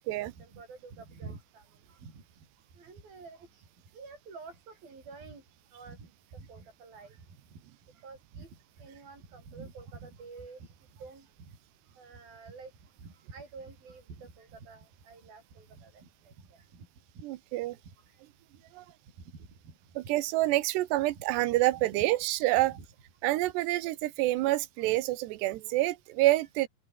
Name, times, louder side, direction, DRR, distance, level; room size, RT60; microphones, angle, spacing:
voice 1, 0.1-2.5 2.7-3.7 3.9-5.4 5.7-7.6 7.9-11.6 11.9-16.9 17.2-17.3 17.6-18.2 19.3-19.8 21.2-21.3 21.5-21.9 22.6-22.8 24.8-24.9, right 4 dB, 55° right, 9.0 m, -49 dB
voice 2, 17.2-17.8 18.7-18.9 20.0-22.8 23.2-26.7, right 17 dB, 85° right, 3.1 m, -27 dB
open air
omnidirectional pair, 4.9 m